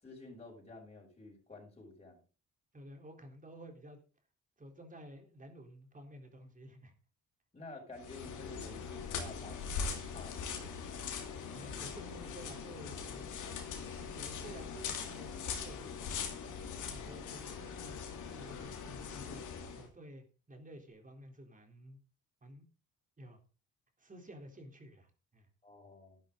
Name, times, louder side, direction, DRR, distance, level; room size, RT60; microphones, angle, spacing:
voice 1, 0.0-2.2 7.5-10.7 11.5-11.8 25.6-26.2, left 2 dB, 20° left, -1 dB, 6.9 m, -51 dB
voice 2, 2.7-4.0 4.6-6.9 11.5-13.3 14.0-17.4 17.8-19.4 19.7-22.0 22.4-22.6 23.2-23.4 24.0-25.5, right 1 dB, 25° right, 3 dB, 3.7 m, -52 dB
sound 1, 7.9-19.9, left 6 dB, 85° left, 3.1 m, -41 dB
11.5 x 11.5 x 3.9 m, 0.35 s
cardioid pair, 90°, 30 cm